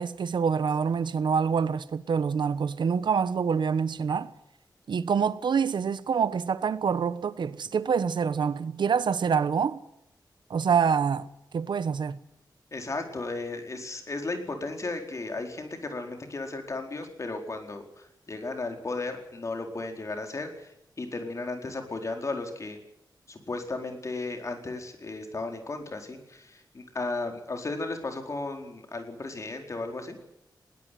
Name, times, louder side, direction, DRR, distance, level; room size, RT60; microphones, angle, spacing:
voice 1, 0.0-4.3 4.9-9.8 10.5-11.3 11.5-12.2, right 6 dB, 80° right, 1.2 m, -26 dB
voice 2, 12.7-22.8 23.3-30.2, left 3 dB, 40° left, 4.5 m, -35 dB
21.0 x 17.5 x 9.4 m
wide cardioid pair, 120°, 8 cm